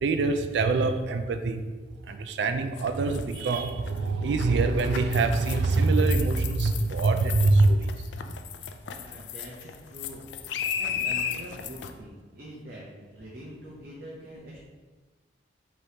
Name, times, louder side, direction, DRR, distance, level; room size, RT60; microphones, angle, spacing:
voice 1, 0.0-1.6 2.0-8.2, right 3 dB, 70° right, 7 dB, 0.3 m, -24 dB
sound 1, 2.8-11.9, left 8 dB, 75° left, 0.3 m, -35 dB
voice 2, 8.9-10.3 10.7-14.6, equal, 55° right, -6 dB, 0.7 m, -44 dB
4.9 x 3.0 x 2.8 m, 1.3 s
head